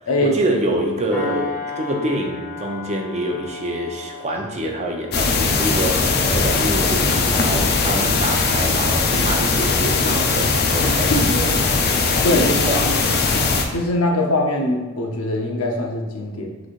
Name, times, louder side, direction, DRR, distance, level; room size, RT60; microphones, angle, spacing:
voice 1, 0.2-11.9 12.4-13.1, right 1 dB, 35° right, 2 dB, 0.6 m, -26 dB
sound 1, 1.1-10.0 10.4-10.7, left 2 dB, 10° left, 1.1 m, -36 dB
sound 2, 5.1-13.6, left 4 dB, 50° left, 0.5 m, -19 dB
sound 3, 6.3-7.1 7.5-8.3 8.7-8.8 9.1-9.9 11.1-11.8, right 1 dB, 60° right, 1.2 m, -31 dB
voice 2, 13.7-16.6, left 1 dB, 90° left, 1 dB, 0.7 m, -22 dB
6.2 x 3.3 x 2.5 m, 1.2 s
head